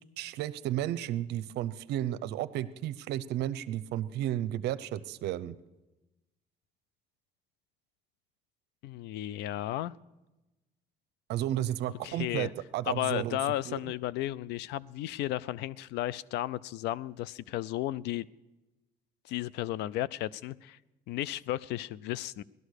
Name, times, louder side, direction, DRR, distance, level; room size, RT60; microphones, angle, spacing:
voice 1, 0.2-5.5 11.3-13.4 13.7-13.9, right 12 dB, 80° right, 0.7 m, -33 dB
voice 2, 8.8-9.9 12.0-12.5 12.9-18.3 19.3-20.8 21.1-22.4, left 14 dB, 85° left, 0.4 m, -34 dB
17.5 x 12.5 x 6.5 m
cardioid pair, 110°, 17 cm